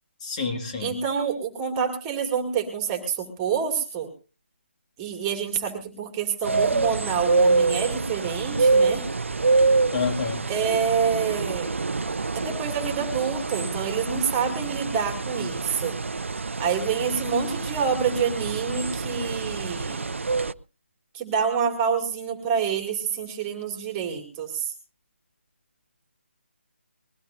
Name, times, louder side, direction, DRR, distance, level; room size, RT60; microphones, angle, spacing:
voice 1, 0.2-1.0 9.9-10.5, left 5 dB, 30° left, 2 dB, 2.2 m, -28 dB
voice 2, 0.8-4.1 5.0-9.0 10.5-11.7 12.3-15.9 16.6-20.1 21.1-24.7, right 6 dB, 15° right, 4 dB, 2.5 m, -27 dB
sound 1, 6.4-20.5, right 3 dB, 75° right, 0.7 m, -26 dB
22.0 x 16.0 x 2.7 m, 0.34 s
figure-of-eight pair, 155°, 7 cm